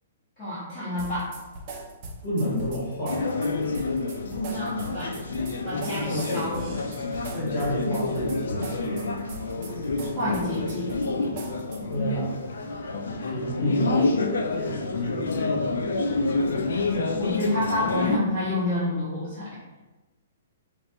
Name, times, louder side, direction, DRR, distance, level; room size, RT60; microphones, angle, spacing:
voice 1, 0.4-1.4 4.5-5.2 5.6-6.7 10.1-11.0 16.4-16.5 16.8-19.6, left 1 dB, 25° left, -13 dB, 1.4 m, -29 dB
sound 1, 1.0-12.0, right 2 dB, 30° right, 0.5 m, -40 dB
voice 2, 2.2-3.3 6.1-6.4 7.3-9.0 11.9-12.3 13.2-15.6, equal, 50° left, -6 dB, 1.4 m, -30 dB
sound 2, 3.1-18.2, left 3 dB, 85° left, 0.5 m, -28 dB
5.3 x 2.2 x 3.0 m, 1.2 s
hypercardioid pair, 170°, 0 cm